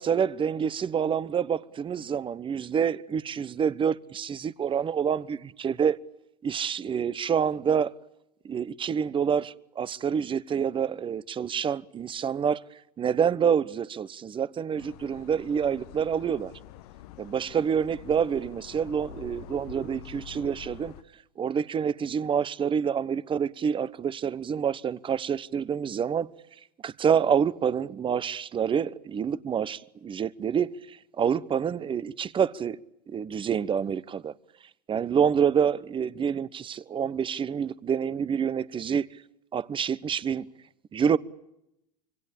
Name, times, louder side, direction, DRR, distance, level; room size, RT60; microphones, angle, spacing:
voice 1, 0.0-6.0 6.4-7.9 8.4-12.6 13.0-16.5 17.2-20.9 21.4-26.3 26.8-32.8 33.1-34.3 34.9-39.1 39.5-40.5 40.9-41.2, right 7 dB, 25° right, 1.1 m, -27 dB
sound 1, 14.8-21.0, left 10 dB, 65° left, 1.3 m, -46 dB
26.5 x 24.0 x 8.7 m
hypercardioid pair, 110°, 21 cm